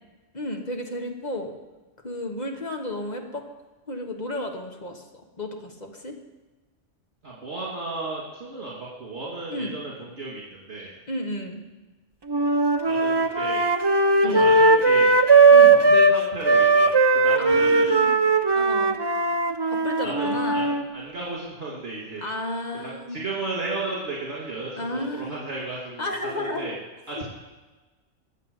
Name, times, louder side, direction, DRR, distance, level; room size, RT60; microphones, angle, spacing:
voice 1, 0.3-1.5 2.0-3.4 3.9-5.0 5.4-6.2 9.5-9.8 11.1-11.6 14.2-14.6 15.5-15.7 17.4-18.2 18.5-18.9 19.7-20.7 22.2-23.2 24.8-25.3 26.0-26.7 27.1-27.2, left 1 dB, 35° left, 3 dB, 1.4 m, -32 dB
voice 2, 7.2-11.0 12.8-13.7 14.2-15.2 15.7-17.0 17.2-18.0 20.0-22.2 22.8-26.8 27.1-27.2, right 3 dB, 55° right, -5 dB, 2.9 m, -34 dB
sound 1, 12.3-16.1 16.4-20.8, right 3 dB, 25° right, 0.6 m, -18 dB
21.5 x 7.5 x 5.5 m, 1.2 s
omnidirectional pair, 1.3 m